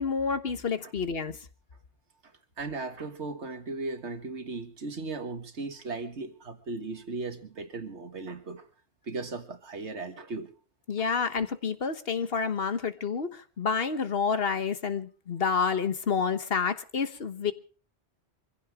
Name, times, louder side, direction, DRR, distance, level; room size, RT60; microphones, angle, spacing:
voice 1, 0.0-1.4 10.9-17.5, left 5 dB, 60° left, 1.4 m, -29 dB
voice 2, 2.6-8.7 9.1-10.5 11.0-11.1, right 3 dB, 85° right, 2.0 m, -37 dB
24.0 x 16.0 x 3.6 m
omnidirectional pair, 1.1 m